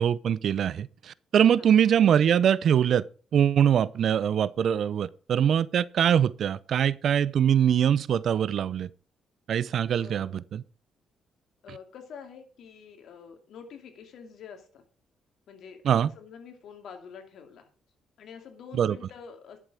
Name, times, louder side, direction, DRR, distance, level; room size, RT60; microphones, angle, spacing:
voice 1, 0.0-3.0 3.3-8.9 9.5-10.6 15.9-16.1 18.7-19.0, right 9 dB, 65° right, 0.5 m, -23 dB
voice 2, 10.0-10.4 11.6-14.8 15.5-15.8 16.1-17.7 18.2-19.6, left 6 dB, 70° left, 2.7 m, -46 dB
11.0 x 7.2 x 4.9 m
cardioid pair, 90°, 0 cm